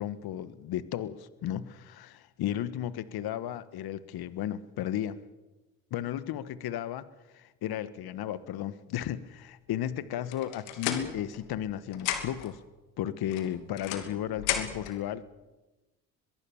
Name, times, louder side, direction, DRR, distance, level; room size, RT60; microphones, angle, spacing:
voice 1, 0.0-5.2 5.9-7.1 7.3-12.6 13.0-15.2, left 11 dB, 60° left, 14 dB, 1.4 m, -34 dB
sound 1, 10.3-11.7 11.9-12.5 13.3-15.0, left 10 dB, 85° left, 2.9 m, -34 dB
23.0 x 22.5 x 7.1 m, 1.1 s
hypercardioid pair, 65°, 42 cm